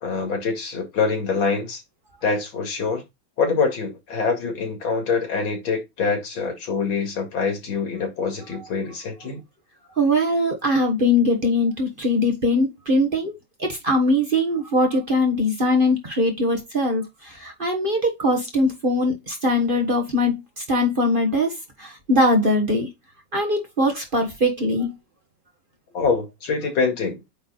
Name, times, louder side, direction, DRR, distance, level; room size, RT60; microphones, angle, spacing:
voice 1, 0.0-1.8 2.2-3.0 3.4-9.4 25.9-27.1, left 5 dB, 85° left, 2.9 m, -25 dB
voice 2, 10.0-13.3 13.6-22.9 23.3-24.9, left 1 dB, 30° right, 1.3 m, -21 dB
8.7 x 3.4 x 4.0 m
omnidirectional pair, 2.1 m